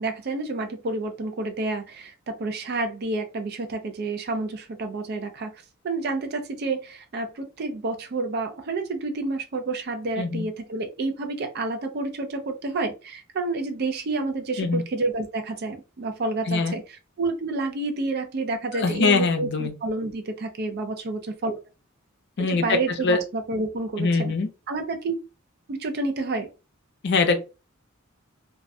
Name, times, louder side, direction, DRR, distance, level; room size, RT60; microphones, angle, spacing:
voice 1, 0.0-21.6 22.4-24.3 24.7-25.1 25.7-26.5, right 3 dB, 50° right, 0.4 m, -29 dB
voice 2, 16.5-16.8 18.7-19.7 22.4-23.2 24.0-24.5 27.0-27.4, left 4 dB, 55° left, 0.5 m, -23 dB
2.3 x 2.1 x 2.6 m
head